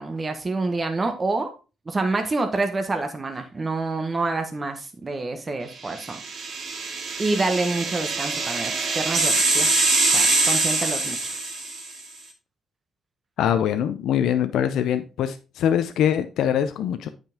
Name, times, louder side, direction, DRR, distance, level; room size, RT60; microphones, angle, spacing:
voice 1, 0.0-1.5 1.8-6.2 7.2-9.8 10.1-11.4, right 3 dB, 30° right, 1.4 m, -27 dB
sound 1, 6.0-12.0, right 3 dB, 60° right, 2.0 m, -24 dB
voice 2, 13.4-17.1, left 9 dB, 80° left, 0.6 m, -23 dB
8.9 x 5.4 x 3.6 m
cardioid pair, 90°, 0 cm